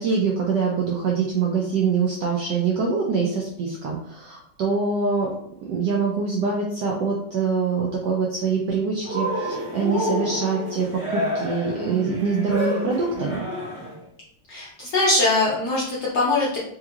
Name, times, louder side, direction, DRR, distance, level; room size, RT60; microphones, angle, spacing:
voice 1, 0.0-5.3 5.6-10.9 11.1-13.5, right 5 dB, 80° right, -2 dB, 0.9 m, -24 dB
Cheering, 9.0-14.0, left 1 dB, 50° right, 1.0 m, -29 dB
voice 2, 14.5-16.6, left 2 dB, 75° left, -5 dB, 0.9 m, -22 dB
3.5 x 3.1 x 2.3 m, 0.72 s
omnidirectional pair, 2.4 m